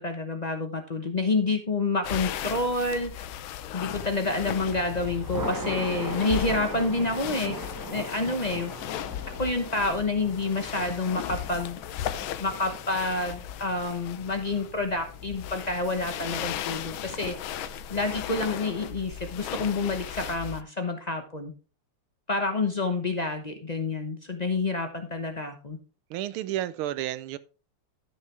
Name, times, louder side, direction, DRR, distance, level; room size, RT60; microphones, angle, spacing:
voice 1, 0.0-3.3 3.7-7.6 7.8-8.7 9.4-11.8 12.4-17.4 17.9-21.5 22.3-25.8, left 3 dB, 45° left, 0.5 m, -28 dB
sound 1, 2.0-20.6, left 11 dB, 75° left, 1.4 m, -36 dB
Thunder, 4.6-15.8, equal, 15° right, 0.9 m, -40 dB
voice 2, 26.1-27.4, right 13 dB, 80° right, 1.5 m, -31 dB
13.0 x 6.5 x 3.3 m
omnidirectional pair, 2.4 m